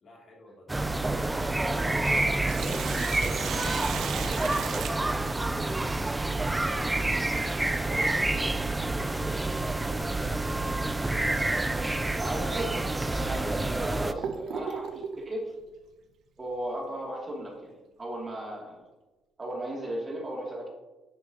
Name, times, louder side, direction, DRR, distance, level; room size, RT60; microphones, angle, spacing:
voice 1, 0.0-2.5 3.1-4.0 4.3-6.1 6.4-8.5 8.8-11.3, left 1 dB, 50° left, -3 dB, 3.0 m, -50 dB
sound 1, 0.7-14.1, right 2 dB, 15° right, 0.4 m, -28 dB
Sink (filling or washing), 2.4-5.8 8.2-8.3 10.2-10.4 10.9-11.0 11.8-11.9 12.6-12.7 13.3-15.2, right 7 dB, 70° right, 0.8 m, -36 dB
sound 2, 11.1-14.0, left 1 dB, 70° left, 1.8 m, -47 dB
voice 2, 12.2-12.8 13.1-15.5 16.4-18.9 19.4-20.7, right 1 dB, 30° right, -3 dB, 2.8 m, -36 dB
9.9 x 6.9 x 3.0 m, 1.1 s
cardioid pair, 90°, 0 cm